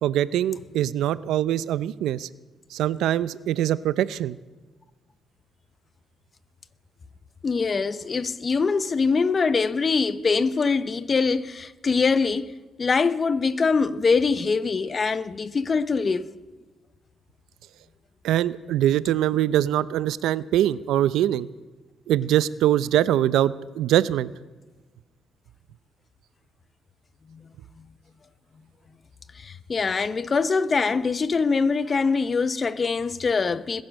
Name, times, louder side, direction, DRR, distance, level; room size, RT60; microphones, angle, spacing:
voice 1, 0.0-2.3 2.7-4.4 18.2-21.5 22.1-24.3, right 12 dB, 85° right, 0.5 m, -23 dB
voice 2, 7.4-12.5 12.8-16.3 27.3-27.4 29.4-33.8, left 4 dB, 35° left, 0.8 m, -23 dB
21.0 x 10.5 x 6.4 m
cardioid pair, 90°, 0 cm